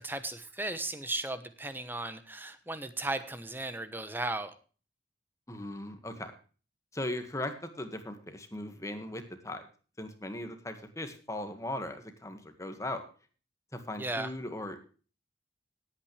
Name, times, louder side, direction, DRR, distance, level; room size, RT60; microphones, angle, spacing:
voice 1, 0.0-4.5 14.0-14.3, right 2 dB, 10° right, 11 dB, 1.1 m, -36 dB
voice 2, 5.5-6.3 6.9-9.7 10.0-13.0 13.7-14.8, left 1 dB, 15° left, 7 dB, 1.8 m, -38 dB
17.5 x 8.9 x 3.3 m, 0.38 s
head